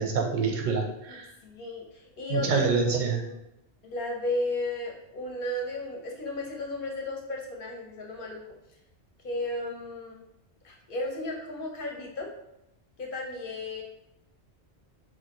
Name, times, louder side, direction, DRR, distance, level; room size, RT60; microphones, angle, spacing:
voice 1, 0.0-1.3 2.3-3.2, right 5 dB, 55° right, 1 dB, 0.6 m, -26 dB
voice 2, 1.4-3.4 3.8-8.4 9.2-10.2 10.6-12.3 13.0-13.8, left 2 dB, 55° left, 0 dB, 0.7 m, -34 dB
3.1 x 2.5 x 2.9 m, 0.84 s
omnidirectional pair, 1.2 m